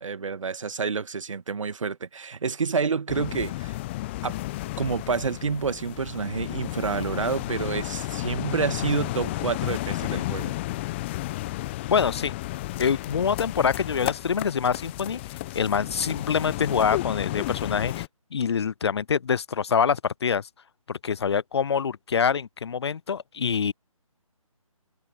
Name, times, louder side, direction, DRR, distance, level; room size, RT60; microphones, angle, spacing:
voice 1, 0.0-3.8 4.2-4.4 4.8-10.6, right 5 dB, 60° right, 1.8 m, -28 dB
sound 1, 3.1-18.1, left 18 dB, 20° left, 1.2 m, -32 dB
voice 2, 11.9-12.4 12.8-15.2 15.5-20.4 20.9-23.7, left 6 dB, 45° left, 0.5 m, -25 dB
figure-of-eight pair, 150°, 18 cm